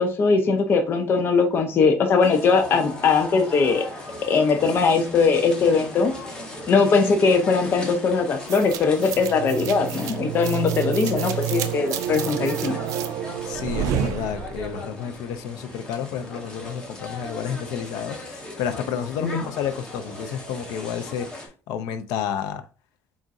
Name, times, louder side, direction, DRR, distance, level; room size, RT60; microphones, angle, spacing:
voice 1, 0.0-3.8 4.3-6.1 6.7-12.8 19.2-19.4, left 4 dB, 40° left, 0.6 m, -20 dB
sound 1, 2.2-21.5, left 1 dB, 15° left, 1.1 m, -38 dB
sound 2, 8.5-14.8, right 10 dB, 65° right, 0.4 m, -29 dB
voice 2, 13.4-22.6, left 8 dB, 85° left, 0.5 m, -30 dB
4.0 x 3.6 x 2.5 m
cardioid pair, 150°, 6 cm